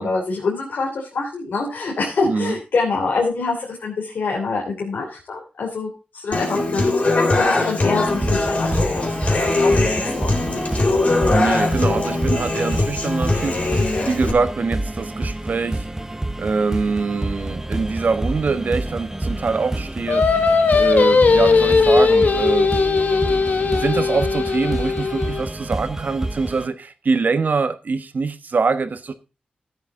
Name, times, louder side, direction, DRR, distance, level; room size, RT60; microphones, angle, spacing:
voice 1, 0.0-10.6, left 3 dB, 85° left, 3.2 m, -25 dB
voice 2, 2.3-2.6 11.3-15.9 16.4-22.7 23.3-29.1, right 4 dB, 60° right, 1.1 m, -24 dB
Human voice / Acoustic guitar, 6.3-14.3, left 2 dB, 45° left, 3.9 m, -21 dB
sound 1, 8.1-26.7, right 1 dB, 15° right, 1.0 m, -29 dB
Singing, 20.1-25.5, left 4 dB, 60° left, 1.4 m, -18 dB
14.0 x 8.1 x 3.7 m
wide cardioid pair, 75°, 3 cm